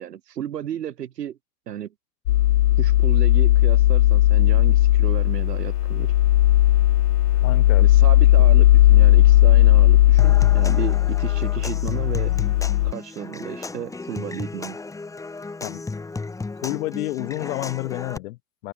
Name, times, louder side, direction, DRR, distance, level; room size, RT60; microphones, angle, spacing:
voice 1, 0.0-1.4 1.7-1.9 2.8-6.1 7.8-12.3 12.8-14.8, right 10 dB, 90° right, 0.8 m, -33 dB
sound 1, 2.3-12.9, left 15 dB, 80° left, 0.6 m, -16 dB
voice 2, 7.3-7.9 8.5-8.6 15.6-15.8 16.6-18.7, left 18 dB, 60° left, 1.6 m, -30 dB
Human voice / Acoustic guitar / Percussion, 10.2-18.2, left 3 dB, 5° left, 1.0 m, -34 dB
hypercardioid pair, 95°, 47 cm